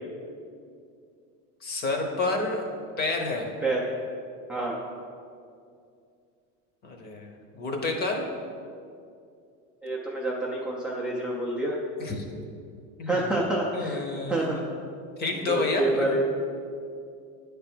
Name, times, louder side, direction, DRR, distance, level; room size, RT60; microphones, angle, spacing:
voice 1, 1.6-2.6 3.0-3.5 6.8-8.2 12.0-12.2 13.0-13.2 13.7-14.7 15.2-16.2, left 3 dB, 25° left, 3 dB, 0.8 m, -29 dB
voice 2, 9.8-11.8 13.0-14.6 15.3-16.2, right 1 dB, 5° right, -5 dB, 0.3 m, -28 dB
9.3 x 3.5 x 5.9 m, 2.4 s
cardioid pair, 165°, 36 cm